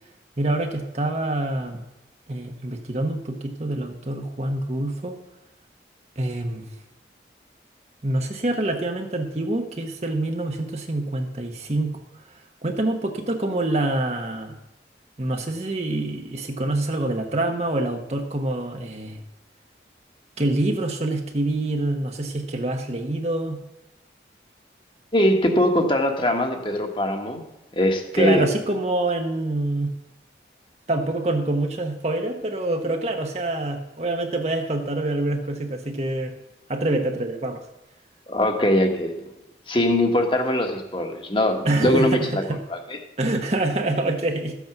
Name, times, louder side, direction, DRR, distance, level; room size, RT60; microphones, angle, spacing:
voice 1, 0.4-1.8 2.3-5.2 6.2-6.7 8.0-12.0 12.6-14.6 15.2-19.2 20.4-23.6 28.1-29.9 30.9-36.3 36.7-37.6 41.6-42.6 43.2-44.5, right 2 dB, 35° right, 3 dB, 1.0 m, -26 dB
voice 2, 25.1-27.4 27.8-28.5 38.3-39.2 39.7-42.4 42.7-43.0, left 1 dB, 30° left, 4 dB, 1.4 m, -21 dB
13.5 x 8.1 x 6.0 m, 0.94 s
head